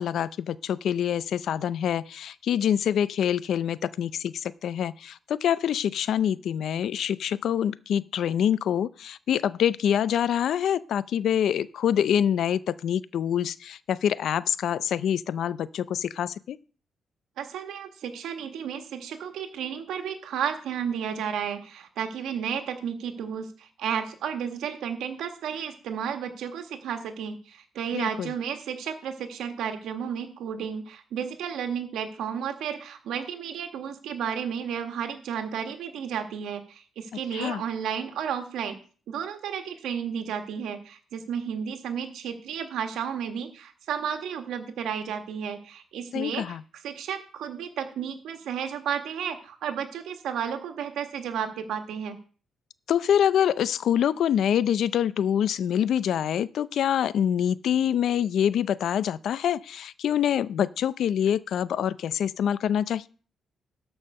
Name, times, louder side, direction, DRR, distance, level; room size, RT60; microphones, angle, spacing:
voice 1, 0.0-16.6 27.9-28.3 37.3-37.6 46.1-46.6 52.9-63.1, left 9 dB, 70° left, 0.4 m, -25 dB
voice 2, 17.4-38.8 39.1-46.6 46.8-52.2, right 8 dB, 85° right, 1.5 m, -32 dB
13.0 x 5.5 x 5.4 m
cardioid pair, 95°, 0 cm